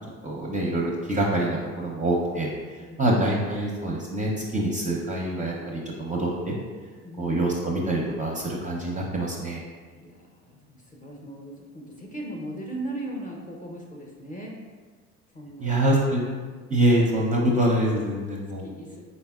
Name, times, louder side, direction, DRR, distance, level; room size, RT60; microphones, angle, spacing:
voice 1, 0.2-2.5 3.0-6.5 7.2-9.6 15.6-16.4 16.7-18.7, right 1 dB, 20° right, -3 dB, 0.6 m, -25 dB
voice 2, 9.9-14.6 15.3-15.7 16.9-17.2 18.6-19.0, right 1 dB, 20° left, -1 dB, 0.7 m, -38 dB
4.1 x 3.4 x 2.3 m, 1.5 s
hypercardioid pair, 70°, 40 cm